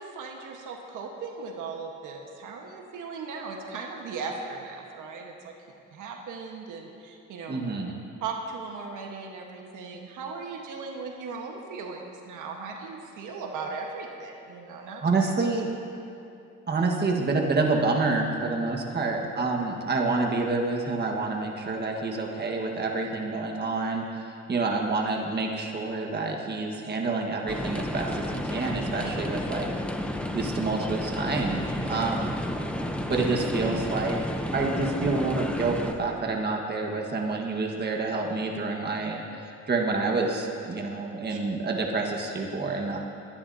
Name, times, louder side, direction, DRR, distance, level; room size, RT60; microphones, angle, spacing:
voice 1, 0.0-5.5 5.9-7.6 8.2-15.0 18.9-19.1 29.0-29.1 31.9-32.1 33.0-33.1 41.3-41.4, right 4 dB, 80° right, 1 dB, 1.4 m, -38 dB
voice 2, 7.5-8.0 15.0-15.7 16.7-29.7 30.3-32.4 33.1-34.2 34.5-43.0, right 3 dB, 35° right, 0 dB, 1.6 m, -28 dB
sound 1, 27.5-35.9, left 1 dB, 5° left, 0.8 m, -31 dB
23.0 x 11.0 x 2.8 m, 2.7 s
cardioid pair, 110°, 30 cm